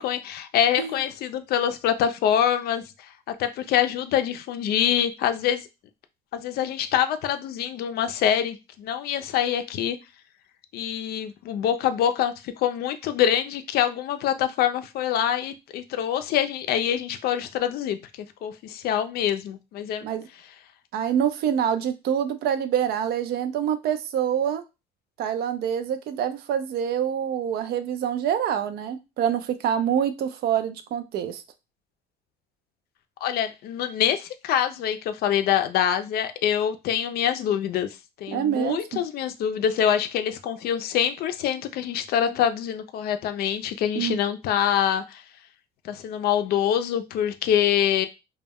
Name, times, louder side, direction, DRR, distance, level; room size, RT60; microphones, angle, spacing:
voice 1, 0.0-2.8 3.3-5.6 6.3-10.0 10.7-18.0 18.4-20.1 33.2-37.9 38.2-45.2 45.8-48.1, left 9 dB, 65° left, 10 dB, 0.4 m, -25 dB
voice 2, 20.9-24.6 25.2-31.4 38.3-39.0 44.0-44.2, right 9 dB, 70° right, 10 dB, 0.4 m, -26 dB
2.2 x 2.1 x 3.4 m, 0.26 s
cardioid pair, 110°, 17 cm